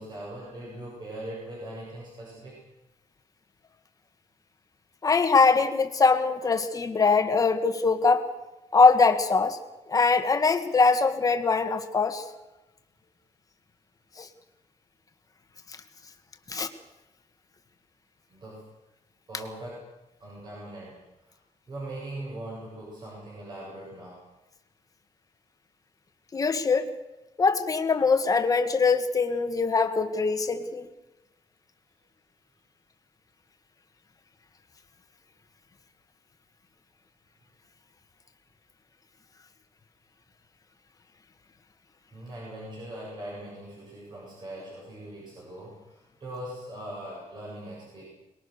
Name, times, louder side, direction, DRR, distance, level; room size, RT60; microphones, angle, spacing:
voice 1, 0.0-2.6 18.3-18.7 19.3-19.9 20.2-21.4 21.7-24.2 42.1-48.1, right 1 dB, 35° right, -4 dB, 7.5 m, -40 dB
voice 2, 5.0-8.3 8.7-9.6 9.9-12.2 14.2-14.3 16.5-16.7 26.3-26.9 27.4-30.9, left 4 dB, 30° left, 7 dB, 1.8 m, -22 dB
23.5 x 21.5 x 6.7 m, 1.0 s
wide cardioid pair, 155°, 12 cm